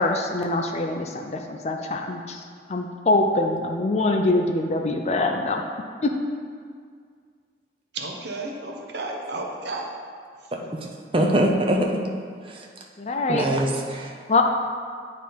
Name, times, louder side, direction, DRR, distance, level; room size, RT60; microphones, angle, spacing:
voice 1, 0.0-5.6 6.0-6.1 13.0-13.5 14.3-14.4, left 2 dB, 35° left, 3 dB, 0.4 m, -24 dB
voice 2, 7.9-9.8 10.5-10.7, right 2 dB, 70° right, 0 dB, 0.9 m, -33 dB
voice 3, 11.1-12.0 12.4-12.6 13.3-14.1, right 1 dB, 30° right, 1 dB, 0.6 m, -23 dB
9.1 x 3.6 x 4.3 m, 2.1 s
head